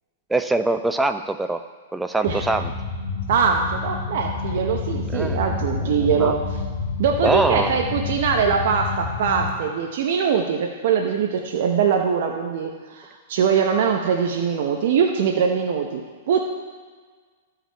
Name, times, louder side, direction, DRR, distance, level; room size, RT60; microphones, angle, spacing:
voice 1, 0.3-1.6 1.9-2.7 5.1-5.4 5.8-6.3 7.2-7.8, right 2 dB, 5° right, 8 dB, 0.6 m, -23 dB
sound 1, 2.3-9.5, left 4 dB, 60° left, 2.3 m, -29 dB
voice 2, 3.3-6.4 7.0-16.5, right 6 dB, 65° right, 3 dB, 0.9 m, -22 dB
14.0 x 5.0 x 4.6 m, 1.5 s
hypercardioid pair, 120°, 0 cm